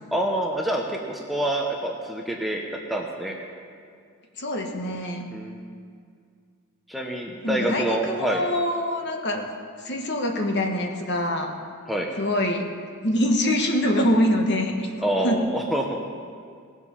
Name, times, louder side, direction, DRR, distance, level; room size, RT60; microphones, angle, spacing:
voice 1, 0.1-2.6 2.9-3.3 5.3-5.7 6.9-8.4 11.9-12.1 15.0-15.9, right 1 dB, ahead, 0 dB, 0.7 m, -26 dB
voice 2, 4.4-5.2 7.4-9.4 9.8-11.5 12.2-12.7 13.0-14.9 15.2-15.5, left 1 dB, 50° left, 2 dB, 1.3 m, -24 dB
18.5 x 7.4 x 5.5 m, 2.2 s
head